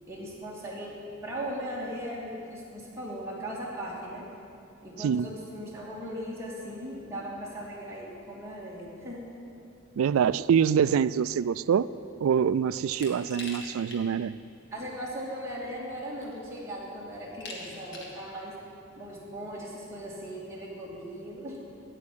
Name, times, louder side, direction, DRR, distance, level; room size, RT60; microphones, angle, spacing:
voice 1, 0.1-1.0 1.2-4.2 4.8-9.2 14.7-18.5 19.0-21.6, equal, 15° right, -6 dB, 2.8 m, -38 dB
voice 2, 5.0-5.3 10.0-11.9 12.2-14.3, right 7 dB, 80° right, 18 dB, 0.3 m, -25 dB
Glass, 12.9-14.0 14.4-14.5 15.6-15.7 16.2-16.6 17.4-18.2, left 2 dB, 60° left, 2.0 m, -42 dB
9.6 x 9.5 x 8.6 m, 2.7 s
head